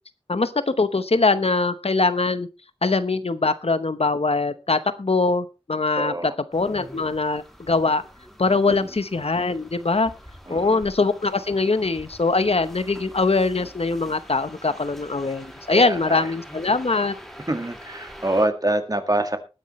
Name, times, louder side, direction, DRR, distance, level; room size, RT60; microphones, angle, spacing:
voice 1, 0.3-2.5 2.8-8.0 8.4-10.1 10.5-17.1, left 3 dB, 85° left, 12 dB, 0.9 m, -22 dB
voice 2, 6.0-6.3 10.5-10.8 15.7-16.2 17.5-19.4, right 1 dB, 40° right, 7 dB, 1.9 m, -25 dB
sound 1, 6.5-18.5, equal, ahead, 2.5 m, -44 dB
19.5 x 9.9 x 3.1 m, 0.30 s
wide cardioid pair, 50°, 10 cm